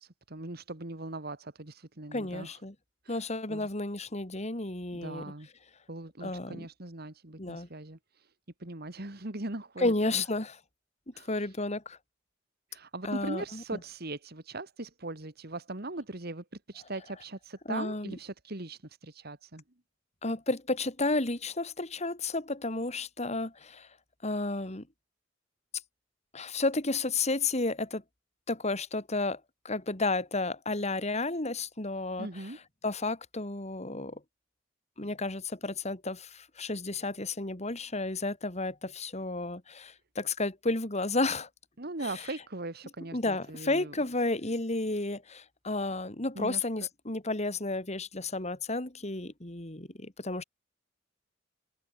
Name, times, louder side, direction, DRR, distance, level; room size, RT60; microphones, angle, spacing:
voice 1, 0.0-2.6 3.0-3.2 3.5-3.7 4.9-5.5 5.9-8.3 8.6-10.2 11.1-11.5 12.7-19.6 32.2-32.6 41.8-43.9 46.4-46.6, right 2 dB, 55° right, 2.3 m, -40 dB
voice 2, 2.1-2.7 3.1-5.3 6.2-6.7 7.4-7.7 9.8-10.6 11.3-12.0 13.0-13.8 17.6-18.1 20.2-23.9 24.2-24.9 26.3-28.0 28.5-34.2 35.0-41.5 42.0-42.3 43.1-50.4, left 2 dB, 35° left, 2.9 m, -32 dB
head